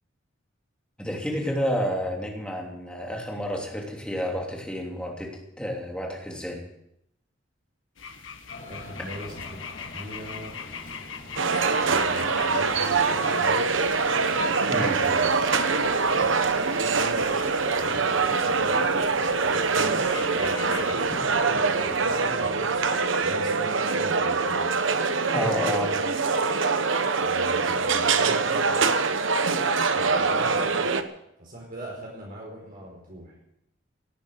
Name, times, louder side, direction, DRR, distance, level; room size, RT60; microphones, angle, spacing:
voice 1, 1.0-5.3 5.6-6.6 14.7-15.0 25.3-26.0, equal, 5° left, 0 dB, 3.0 m, -30 dB
sound 1, 8.0-20.9, left 6 dB, 90° left, 1.6 m, -43 dB
sound 2, 8.5-23.0, left 1 dB, 50° left, 6.1 m, -46 dB
voice 2, 8.7-10.5 11.8-13.8 14.9-15.3 16.8-19.0 19.7-22.8 23.2-24.6 27.1-29.1 29.9-31.0 31.4-33.3, equal, 50° right, -2 dB, 4.8 m, -40 dB
sound 3, 11.4-31.0, right 4 dB, 80° right, 1.1 m, -24 dB
18.0 x 9.2 x 8.3 m, 0.79 s
head